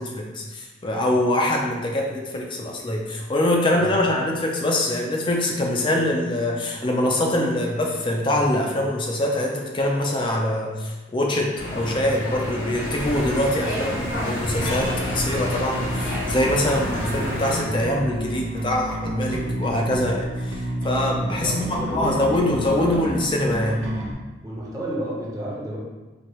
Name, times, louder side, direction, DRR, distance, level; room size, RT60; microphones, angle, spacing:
voice 1, 0.0-23.8, left 1 dB, 25° left, 0 dB, 0.4 m, -24 dB
sound 1, 11.5-17.6, equal, 90° left, 1.1 m, -29 dB
Bass guitar, 14.5-24.1, right 1 dB, 85° right, 0.6 m, -30 dB
voice 2, 21.4-23.0 24.4-25.8, equal, 20° right, -5 dB, 0.8 m, -31 dB
4.5 x 2.8 x 3.0 m, 1.2 s
head